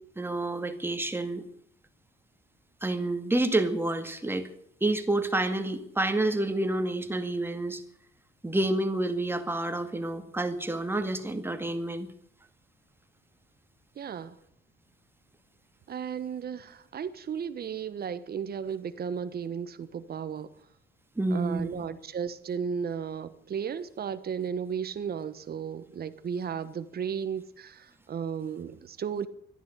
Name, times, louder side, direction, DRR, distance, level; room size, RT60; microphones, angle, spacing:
voice 1, 0.2-1.5 2.8-4.5 4.8-7.8 8.4-12.1 21.2-21.8, right 2 dB, 10° right, 2.2 m, -29 dB
voice 2, 14.0-14.4 15.9-20.5 21.3-29.3, right 7 dB, 50° right, 1.3 m, -34 dB
13.0 x 11.0 x 10.0 m
cardioid pair, 90°, 20 cm